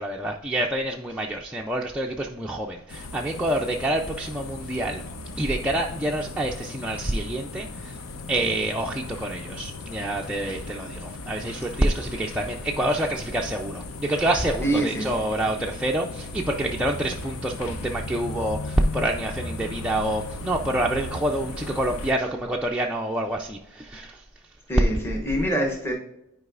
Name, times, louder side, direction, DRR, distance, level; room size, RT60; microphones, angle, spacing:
voice 1, 0.0-5.0 5.3-8.0 8.3-24.2, right 1 dB, 5° right, -1 dB, 0.3 m, -27 dB
sound 1, 2.9-22.1, left 2 dB, 75° left, 0.7 m, -37 dB
voice 2, 14.6-15.1 24.7-25.9, right 1 dB, 10° left, -1 dB, 0.9 m, -25 dB
9.6 x 4.7 x 2.4 m, 0.83 s
head